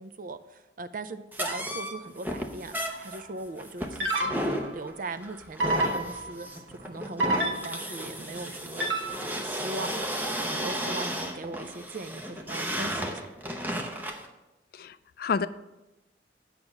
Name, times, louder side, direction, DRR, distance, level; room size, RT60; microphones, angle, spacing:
voice 1, 0.0-4.5 4.7-6.5 6.8-10.1 10.6-13.3, right 3 dB, 50° right, 11 dB, 0.5 m, -39 dB
sound 1, 1.3-14.3, equal, 10° right, 0.8 m, -33 dB
sound 2, 2.8-3.2 4.0-4.7 5.6-6.5 7.2-8.0 8.8-9.4, right 1 dB, 85° right, 1.2 m, -29 dB
voice 2, 14.7-15.5, left 5 dB, 55° left, 14 dB, 0.4 m, -30 dB
8.8 x 6.0 x 5.4 m, 1.0 s
head